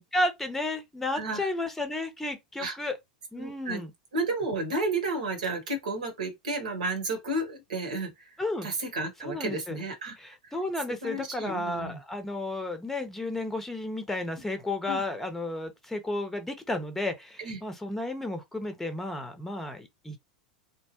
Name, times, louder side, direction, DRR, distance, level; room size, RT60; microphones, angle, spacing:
voice 1, 0.0-3.0 3.3-3.9 8.4-8.7 9.2-9.8 10.2-20.2, left 2 dB, 5° left, 0.8 m, -32 dB
voice 2, 1.1-1.5 2.6-2.7 3.4-3.8 4.1-8.1 8.6-10.2 11.0-12.0 14.9-15.0 17.4-17.6, right 2 dB, 65° right, 1.1 m, -32 dB
3.0 x 2.1 x 2.9 m
figure-of-eight pair, 85°, 4 cm